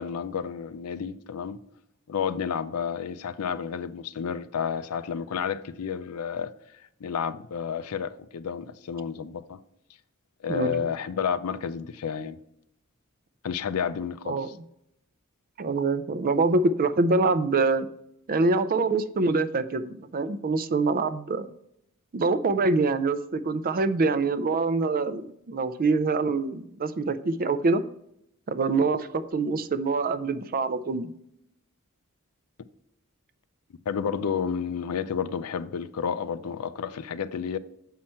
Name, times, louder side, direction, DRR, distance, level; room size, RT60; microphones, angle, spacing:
voice 1, 0.0-1.6 2.1-6.5 7.0-9.6 10.4-12.4 13.4-14.4 33.9-37.6, left 7 dB, 80° left, 0.5 m, -31 dB
voice 2, 10.5-10.9 14.3-14.5 15.6-17.9 18.3-21.5 22.1-27.8 28.5-31.1, right 3 dB, 40° right, 0.4 m, -25 dB
7.6 x 5.7 x 4.3 m
head